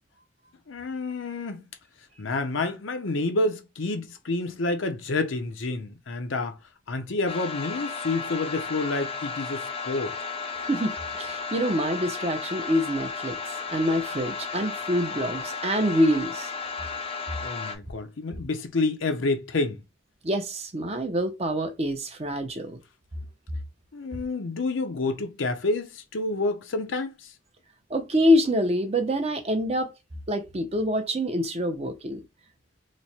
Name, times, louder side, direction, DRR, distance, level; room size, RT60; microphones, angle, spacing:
voice 1, 0.7-1.6 2.2-6.6 6.9-10.2 17.4-19.8 23.9-27.3, left 2 dB, 80° left, 0.7 m, -29 dB
sound 1, 7.3-17.7, left 5 dB, 30° left, 0.5 m, -34 dB
voice 2, 10.7-16.5 20.2-22.8 27.9-29.9 30.3-32.2, equal, 30° right, 0.6 m, -26 dB
3.1 x 2.2 x 4.1 m
head